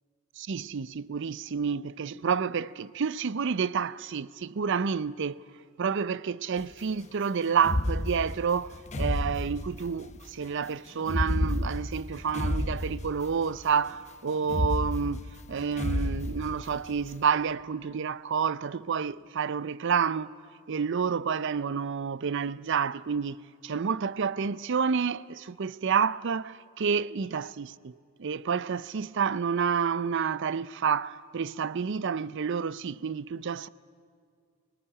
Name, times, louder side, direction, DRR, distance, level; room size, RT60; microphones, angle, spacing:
voice 1, 0.4-5.4 5.8-20.3 20.7-23.4 23.6-27.9 28.2-33.7, right 6 dB, 60° right, 0.5 m, -29 dB
sound 1, 6.6-6.7 7.6-10.2 11.0-13.6 13.9-14.0 14.4-17.0, left 1 dB, 35° left, 0.8 m, -31 dB
22.5 x 19.0 x 9.9 m
head